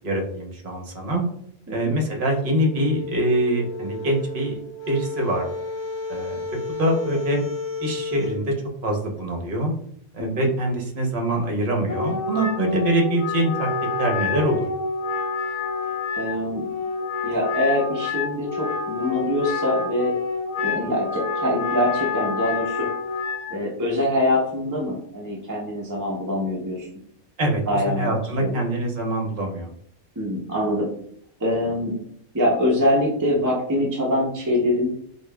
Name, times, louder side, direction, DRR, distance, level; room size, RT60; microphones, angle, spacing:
voice 1, 0.0-1.3 1.7-4.6 4.9-5.5 6.1-6.4 6.8-7.4 7.8-8.5 8.8-9.7 10.1-13.7 14.0-14.7 27.4-29.7, right 1 dB, 50° right, 1 dB, 0.9 m, -24 dB
sound 1, 2.2-8.4, left 3 dB, 50° left, 1.0 m, -32 dB
Wind instrument woodwind instrument, 11.8-23.5, left 4 dB, 30° left, 0.7 m, -28 dB
voice 2, 16.1-16.6 17.2-20.1 20.6-22.9 23.5-26.9 27.7-28.1 28.4-28.6 30.2-30.9 31.4-31.9 32.3-34.9, left 1 dB, 25° right, -3 dB, 0.4 m, -24 dB
5.3 x 2.4 x 2.2 m, 0.67 s
omnidirectional pair, 1.3 m